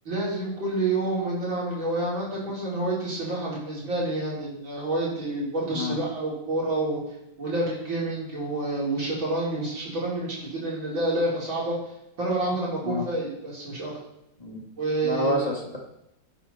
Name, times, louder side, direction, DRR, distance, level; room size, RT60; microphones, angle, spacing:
voice 1, 0.1-7.0 7.4-11.8 12.2-13.9 14.8-15.6, right 2 dB, 85° right, -6 dB, 5.1 m, -28 dB
voice 2, 15.0-15.8, left 1 dB, 20° left, -1 dB, 2.1 m, -28 dB
13.0 x 9.3 x 4.3 m, 0.84 s
omnidirectional pair, 2.1 m